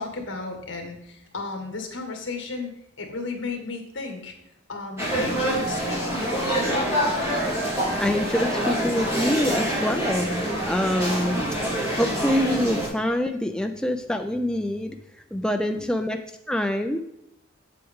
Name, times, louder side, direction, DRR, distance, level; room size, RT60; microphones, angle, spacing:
voice 1, 0.0-4.3 4.7-6.7 7.0-7.1 15.4-15.8, left 3 dB, 70° left, 3 dB, 1.8 m, -34 dB
sound 1, 5.0-12.9, right 1 dB, 15° right, 3.6 m, -26 dB
voice 2, 8.0-11.4 12.0-16.2 16.5-17.0, left 1 dB, 5° left, 5 dB, 0.4 m, -25 dB
8.2 x 7.8 x 3.6 m, 0.81 s
head